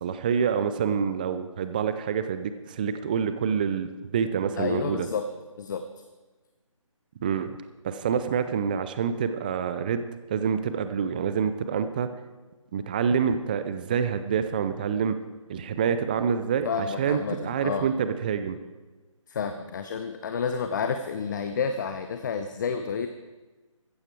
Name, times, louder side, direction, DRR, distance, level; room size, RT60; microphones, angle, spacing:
voice 1, 0.0-5.1 7.2-7.6 7.8-12.1 12.7-15.2 15.5-18.6, right 7 dB, 15° right, 10 dB, 0.4 m, -27 dB
voice 2, 4.6-5.3 5.6-5.8 16.6-17.9 19.3-23.1, left 6 dB, 35° left, 8 dB, 0.7 m, -30 dB
15.0 x 14.0 x 4.6 m, 1.2 s
figure-of-eight pair, 155°, 17 cm